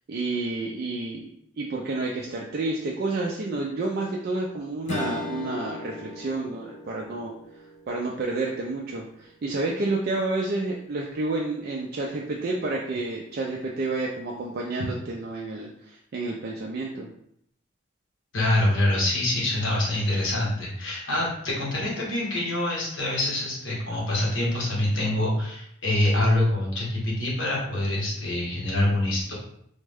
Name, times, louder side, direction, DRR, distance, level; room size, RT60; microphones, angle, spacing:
voice 1, 0.1-1.3 1.6-7.3 7.9-17.1, right 2 dB, 50° right, -1 dB, 0.3 m, -30 dB
Strum, 4.9-9.5, left 2 dB, 35° left, 0.3 m, -38 dB
voice 2, 18.3-29.3, left 1 dB, 70° left, -4 dB, 1.2 m, -25 dB
3.4 x 2.1 x 3.4 m, 0.71 s
head